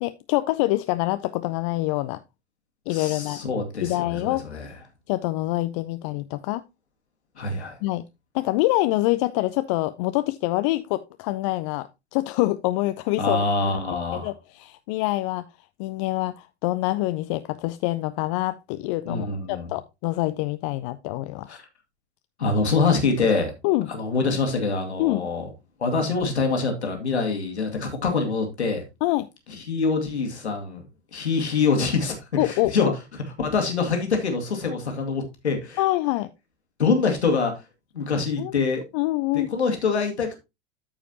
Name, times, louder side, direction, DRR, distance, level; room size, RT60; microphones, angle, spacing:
voice 1, 0.0-2.2 2.9-3.4 3.8-4.4 5.1-6.6 7.8-8.0 8.3-13.4 14.1-15.4 15.8-21.6 23.6-23.9 25.0-25.3 29.0-29.3 32.4-32.9 35.8-36.3 38.4-38.5 38.9-39.7, left 18 dB, 30° left, 0.4 m, -25 dB
voice 2, 2.9-4.7 7.4-7.8 13.2-14.3 19.1-19.7 21.5-21.6 22.4-23.5 23.9-25.5 25.8-28.8 29.7-30.8 31.1-32.1 32.4-32.9 33.4-35.8 36.8-37.5 37.9-38.8 39.5-40.4, left 4 dB, 75° left, 2.2 m, -25 dB
13.5 x 5.0 x 2.9 m
figure-of-eight pair, 90°, 34 cm